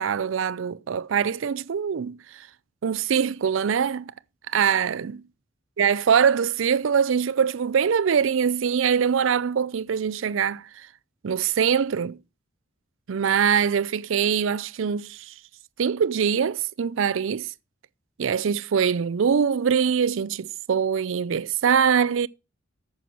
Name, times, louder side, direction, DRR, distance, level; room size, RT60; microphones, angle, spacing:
voice 1, 0.0-2.2 2.8-4.1 4.5-5.2 5.8-10.6 11.2-12.2 13.1-15.3 15.8-17.5 18.2-22.3, right 7 dB, 85° right, 0.4 m, -23 dB
9.2 x 6.2 x 6.1 m
head